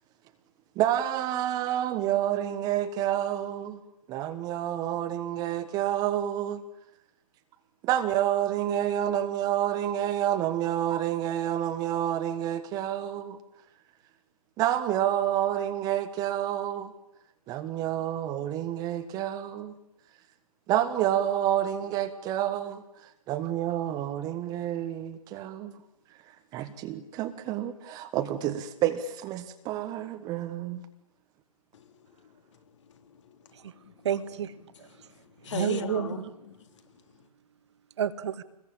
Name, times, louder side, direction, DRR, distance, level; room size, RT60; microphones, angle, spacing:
voice 1, 0.8-3.8 4.1-6.6 7.8-13.4 14.6-16.9 17.5-19.7 20.7-22.8 23.3-25.7 26.5-30.8, right 11 dB, 20° right, 1.5 m, -29 dB
voice 2, 31.7-32.6 32.9-33.9 34.9-36.2 36.5-36.8 37.1-37.3, left 7 dB, 50° left, 3.8 m, -40 dB
voice 3, 34.0-35.1 35.4-36.3 38.0-38.4, right 9 dB, 45° right, 1.8 m, -31 dB
28.0 x 21.5 x 9.0 m
figure-of-eight pair, 135°, 20 cm